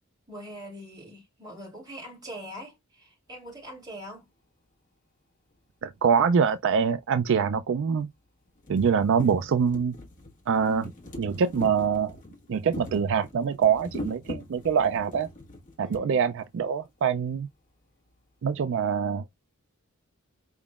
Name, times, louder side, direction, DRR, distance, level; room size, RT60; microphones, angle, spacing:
voice 1, 0.3-4.3 15.8-16.2, equal, 20° right, 3.0 m, -43 dB
voice 2, 5.8-8.1 8.7-9.9 10.5-10.9 11.2-12.1 12.5-15.3 15.8-17.5 18.4-19.2, right 6 dB, 55° right, 0.3 m, -24 dB
sound 1, 6.5-6.6 7.6-7.7 8.1-8.2 8.5-16.1 17.0-17.1 17.3-17.4, left 1 dB, 35° left, 1.5 m, -42 dB
4.9 x 3.6 x 2.4 m
head